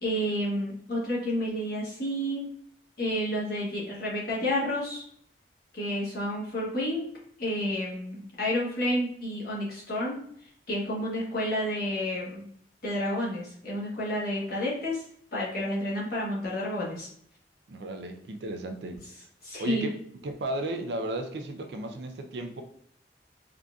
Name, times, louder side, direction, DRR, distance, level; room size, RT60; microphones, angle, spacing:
voice 1, 0.0-2.5 3.0-5.0 5.7-7.0 7.4-10.2 10.7-12.4 12.8-15.0 15.3-17.1 19.4-19.9, equal, 55° left, 1.2 m, -30 dB
voice 2, 17.7-19.0 19.6-19.9 20.2-22.6, right 1 dB, 70° right, 0.4 m, -34 dB
3.8 x 2.5 x 2.3 m
head